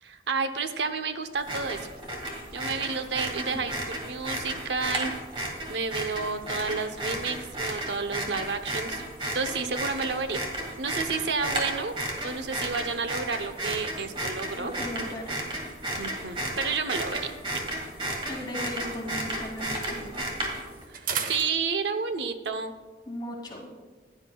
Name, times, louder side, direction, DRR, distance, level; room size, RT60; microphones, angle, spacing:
voice 1, 0.0-1.9 2.5-5.1 5.7-9.0 9.3-10.4 10.8-12.0 12.2-14.7 16.0-17.3 20.9-22.7, right 4 dB, 80° right, 8 dB, 0.7 m, -31 dB
sound 1, 1.4-20.8, right 1 dB, 30° right, 2.0 m, -33 dB
sound 2, 11.9-14.7 15.5-19.1 19.4-22.2, right 6 dB, 50° right, 0.7 m, -42 dB
voice 2, 14.6-15.4 18.3-20.3 23.1-23.7, left 1 dB, 25° left, -2 dB, 2.2 m, -37 dB
15.5 x 10.0 x 2.3 m, 1.3 s
head